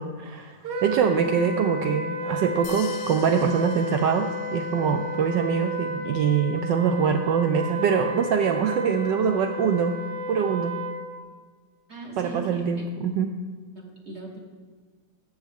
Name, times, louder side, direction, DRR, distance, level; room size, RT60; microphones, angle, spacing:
voice 1, 0.0-10.0 10.3-10.8 12.2-13.3, right 6 dB, 80° right, 6 dB, 1.0 m, -24 dB
Wind instrument woodwind instrument, 0.6-11.1, equal, 60° right, 1.4 m, -32 dB
sound 1, 2.6-4.9, left 9 dB, 85° left, 1.6 m, -44 dB
voice 2, 11.9-12.8 13.7-14.4, right 2 dB, 40° right, -1 dB, 1.1 m, -38 dB
15.0 x 6.3 x 3.5 m, 1.5 s
omnidirectional pair, 2.4 m